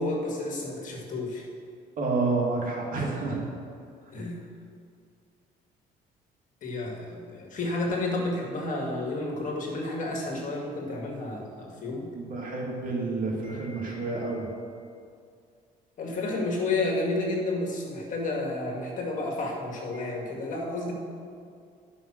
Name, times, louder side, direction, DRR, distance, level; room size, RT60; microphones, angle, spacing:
voice 1, 0.0-1.5 4.1-4.4 6.6-12.1 16.0-20.9, left 2 dB, 50° left, -1 dB, 2.0 m, -31 dB
voice 2, 2.0-3.4 12.1-14.5 19.9-20.1, right 3 dB, 55° right, -2 dB, 2.4 m, -29 dB
11.5 x 5.6 x 6.1 m, 2.3 s
cardioid pair, 110°, 17 cm